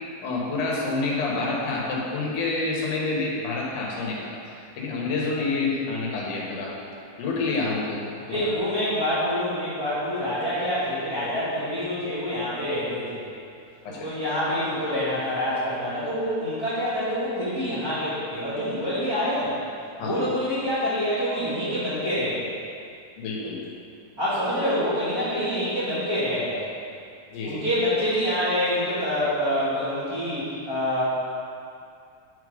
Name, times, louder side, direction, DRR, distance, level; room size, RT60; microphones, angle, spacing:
voice 1, 0.2-6.7 7.2-8.0 8.3-8.5 13.9-14.1 20.0-20.2 23.2-23.6 27.3-27.6, left 3 dB, 85° left, -3 dB, 2.8 m, -28 dB
voice 2, 8.3-13.3 13.9-19.6 20.0-22.5 24.2-26.7 27.4-31.0, equal, 30° right, -14 dB, 2.4 m, -26 dB
9.9 x 4.5 x 5.1 m, 2.4 s
omnidirectional pair, 3.5 m